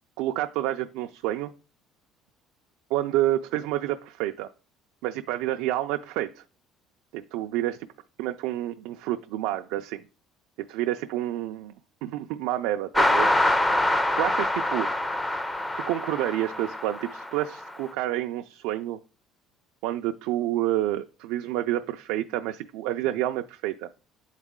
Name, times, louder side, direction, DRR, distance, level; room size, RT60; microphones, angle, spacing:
voice 1, 0.2-1.5 2.9-4.5 5.0-6.4 7.1-7.9 8.2-10.0 10.6-11.7 12.0-13.3 14.1-14.9 15.9-19.0 19.8-23.9, right 14 dB, 85° right, 6 dB, 0.3 m, -29 dB
sound 1, 12.9-17.8, left 1 dB, 10° left, 0.4 m, -25 dB
9.8 x 4.0 x 3.6 m, 0.37 s
cardioid pair, 155°, 0 cm